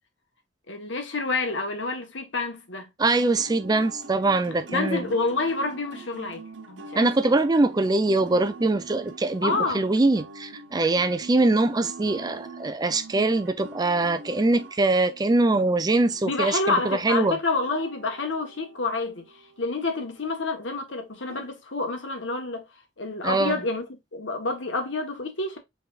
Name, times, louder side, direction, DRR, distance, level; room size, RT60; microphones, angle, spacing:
voice 1, 0.7-2.9 4.7-7.1 9.4-9.8 16.2-19.3 19.6-22.6 23.0-25.6, left 3 dB, 75° left, 1.2 m, -28 dB
voice 2, 3.0-5.1 7.0-17.4 23.2-23.6, right 2 dB, 20° right, 0.4 m, -23 dB
sound 1, 3.0-20.4 21.3-21.5, right 3 dB, 75° right, 0.9 m, -45 dB
5.7 x 3.5 x 2.4 m
head